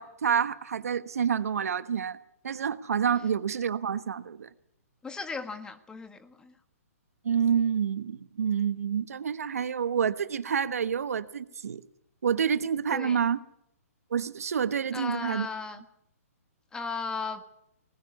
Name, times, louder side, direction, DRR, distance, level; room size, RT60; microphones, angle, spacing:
voice 1, 0.0-2.2 2.4-4.5 7.2-11.8 12.2-13.4 14.1-15.5, right 7 dB, 75° right, 1.2 m, -28 dB
voice 2, 5.0-6.5 12.9-13.2 14.9-15.8 16.7-17.4, left 4 dB, 10° left, 1.6 m, -36 dB
19.5 x 19.5 x 8.3 m
hypercardioid pair, 130°, 8 cm